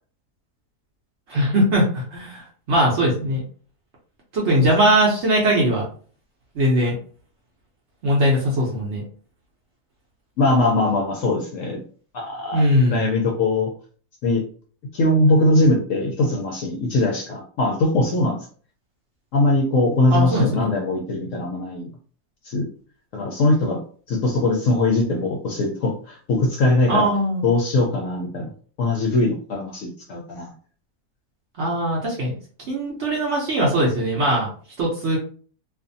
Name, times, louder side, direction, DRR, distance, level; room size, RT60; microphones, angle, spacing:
voice 1, 1.3-3.4 4.3-5.9 6.5-6.9 8.0-9.0 12.5-13.0 20.1-20.7 26.9-27.4 31.6-32.3 32.7-34.5 34.8-35.2, right 1 dB, 60° right, -3 dB, 0.8 m, -20 dB
voice 2, 10.4-11.8 12.1-13.7 14.2-14.4 14.9-18.4 19.3-21.9 22.4-22.6 23.1-23.8 24.1-27.1 27.4-28.4 28.8-30.5, left 2 dB, 70° left, 0 dB, 0.8 m, -21 dB
2.5 x 2.4 x 2.6 m, 0.43 s
omnidirectional pair, 1.7 m